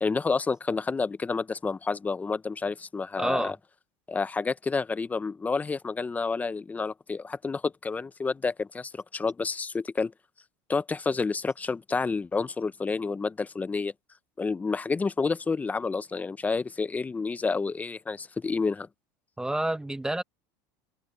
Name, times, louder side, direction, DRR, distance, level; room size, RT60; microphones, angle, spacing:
voice 1, 0.0-3.6 4.1-10.1 10.7-13.9 14.4-18.9, left 4 dB, 15° left, 0.7 m, -29 dB
voice 2, 3.2-3.5 19.4-20.2, right 1 dB, 5° right, 1.1 m, -29 dB
open air
supercardioid pair, 115°, 10 cm